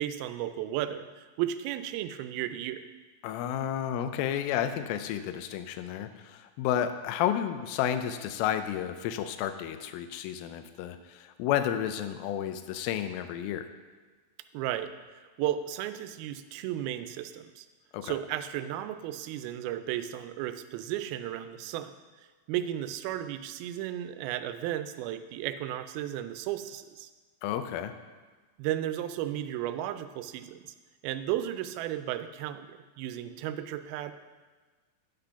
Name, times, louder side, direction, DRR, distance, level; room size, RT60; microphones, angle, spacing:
voice 1, 0.0-2.8 14.5-17.7 18.0-21.9 22.2-27.1 28.6-30.7 31.0-34.1, right 12 dB, 90° right, 10 dB, 2.4 m, -34 dB
voice 2, 3.2-13.7 17.9-18.1 27.4-27.9, left 10 dB, 85° left, 9 dB, 2.4 m, -31 dB
8.9 x 6.0 x 5.6 m, 1.4 s
omnidirectional pair, 4.3 m